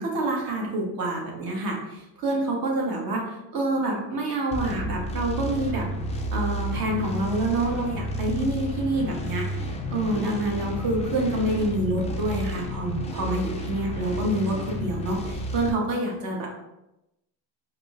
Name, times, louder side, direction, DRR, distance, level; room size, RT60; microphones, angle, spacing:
voice 1, 0.0-5.9 6.3-16.5, right 1 dB, 50° right, -1 dB, 1.1 m, -27 dB
sound 1, 4.5-15.7, equal, 15° left, 0.3 m, -31 dB
4.6 x 2.0 x 2.5 m, 0.91 s
cardioid pair, 115°, 46 cm